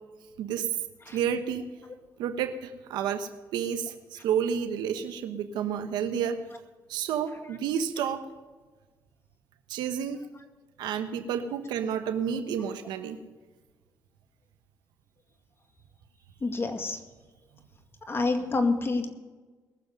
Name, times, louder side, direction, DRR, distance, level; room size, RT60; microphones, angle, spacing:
voice 1, 0.4-0.7 1.1-1.7 2.2-6.4 6.9-8.2 9.7-10.2 10.8-13.2, right 8 dB, 90° right, 8 dB, 1.2 m, -30 dB
voice 2, 16.4-17.0 18.1-19.1, left 3 dB, 35° left, 6 dB, 2.2 m, -27 dB
21.0 x 7.4 x 5.4 m, 1.3 s
cardioid pair, 80°, 7 cm